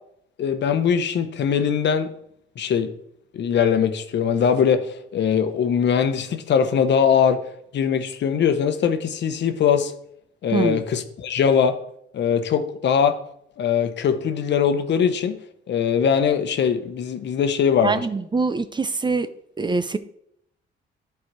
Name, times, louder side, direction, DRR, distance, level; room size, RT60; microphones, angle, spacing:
voice 1, 0.4-2.1 2.6-2.9 3.3-7.4 7.7-9.9 10.4-11.7 12.1-13.2 13.6-15.4 15.7-18.0, left 7 dB, 65° left, 1.0 m, -21 dB
voice 2, 10.5-10.8 17.8-19.3 19.6-20.0, right 4 dB, 20° right, 0.6 m, -23 dB
11.0 x 4.7 x 4.7 m
cardioid pair, 90°, 20 cm